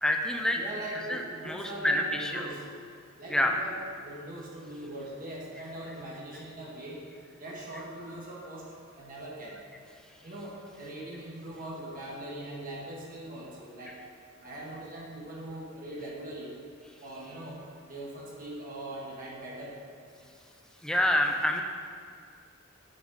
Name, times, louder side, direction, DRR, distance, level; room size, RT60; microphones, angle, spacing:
voice 1, 0.0-0.6 0.9-2.5 3.3-3.6 20.8-21.6, left 1 dB, 5° left, 2 dB, 0.5 m, -27 dB
voice 2, 0.5-2.6 3.2-7.1 7.4-9.6 10.2-13.9 14.4-16.5 17.0-17.6 17.9-19.7, right 1 dB, 45° right, -4 dB, 1.2 m, -41 dB
7.7 x 4.0 x 5.2 m, 2.2 s
head